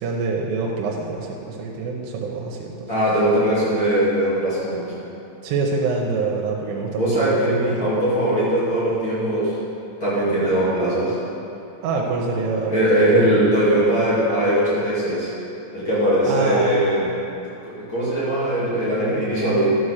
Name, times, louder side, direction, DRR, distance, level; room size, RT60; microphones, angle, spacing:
voice 1, 0.0-2.9 5.4-7.9 11.8-13.3 16.3-16.8, right 4 dB, 90° right, -1 dB, 3.3 m, -25 dB
voice 2, 2.9-4.9 6.9-9.6 10.0-11.2 12.7-15.3 15.7-17.2 17.6-19.8, right 1 dB, 30° left, -11 dB, 2.7 m, -20 dB
12.0 x 5.5 x 6.4 m, 2.8 s
omnidirectional pair, 5.5 m